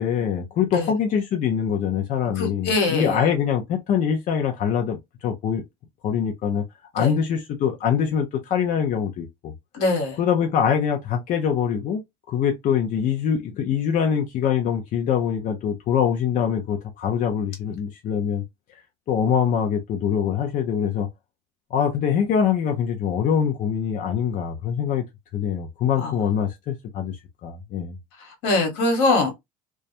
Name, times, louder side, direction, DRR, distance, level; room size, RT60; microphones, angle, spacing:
voice 1, 0.0-5.6 6.0-6.6 6.9-9.5 10.2-12.0 12.3-18.4 19.1-21.1 21.7-25.0 25.3-27.2 27.4-28.0, left 8 dB, 50° left, 0.5 m, -24 dB
voice 2, 2.4-3.2 7.0-7.1 9.7-10.2 26.0-26.2 28.4-29.3, left 2 dB, 80° left, 1.2 m, -22 dB
2.2 x 2.1 x 2.7 m
supercardioid pair, 110°, 18 cm